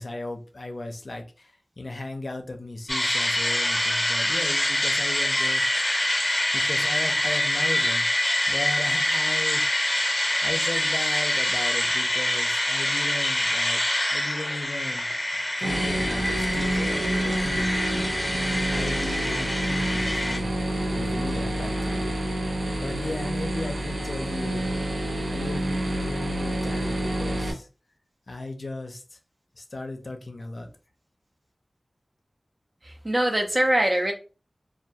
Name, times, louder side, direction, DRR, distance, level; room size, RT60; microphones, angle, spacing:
voice 1, 0.0-5.8 6.5-9.6 10.1-13.8 14.1-20.5 20.9-22.1 22.8-24.7 25.3-27.7 28.3-29.2 29.5-30.7, left 2 dB, 60° left, 0.5 m, -36 dB
sound 1, 2.9-20.4, left 1 dB, 25° left, 0.7 m, -25 dB
sound 2, 15.6-27.5, right 1 dB, 90° right, 0.5 m, -28 dB
voice 2, 32.8-34.1, right 1 dB, 40° right, 0.5 m, -23 dB
2.2 x 2.2 x 2.7 m
wide cardioid pair, 60°, 0 cm